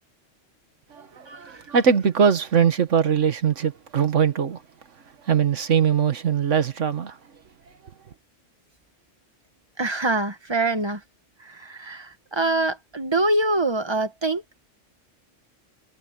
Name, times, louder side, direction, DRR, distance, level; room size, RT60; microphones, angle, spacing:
voice 1, 0.9-4.6 5.2-7.2, right 7 dB, 75° right, 1.6 m, -21 dB
voice 2, 9.8-11.0 11.4-14.4, right 2 dB, 20° right, 1.3 m, -25 dB
omnidirectional pair, 1.3 m